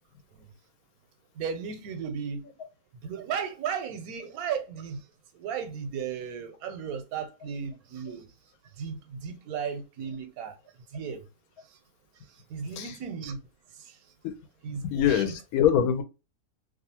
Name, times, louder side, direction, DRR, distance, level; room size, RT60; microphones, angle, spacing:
voice 1, 1.4-2.5 3.0-5.0 5.3-8.3 8.8-10.6 10.9-11.2 12.5-13.4 13.8-14.0 14.6-14.8 15.1-15.3, right 7 dB, 85° right, 1.1 m, -35 dB
voice 2, 12.7-13.0 14.2-14.3 14.8-16.0, left 9 dB, 80° left, 1.0 m, -24 dB
2.6 x 2.3 x 2.8 m
omnidirectional pair, 1.5 m